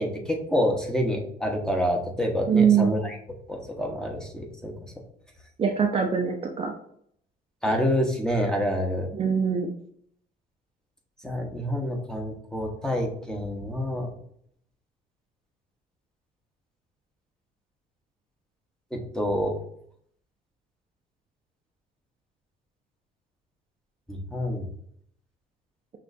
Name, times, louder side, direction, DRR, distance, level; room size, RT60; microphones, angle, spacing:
voice 1, 0.0-3.2 3.5-4.7 7.6-9.1 11.2-14.1 18.9-19.5 24.1-24.7, equal, 5° left, 1 dB, 0.9 m, -27 dB
voice 2, 2.5-3.0 5.6-6.7 9.1-9.7, right 6 dB, 35° right, 2 dB, 0.5 m, -22 dB
6.0 x 2.4 x 2.5 m, 0.66 s
cardioid pair, 110°, 17 cm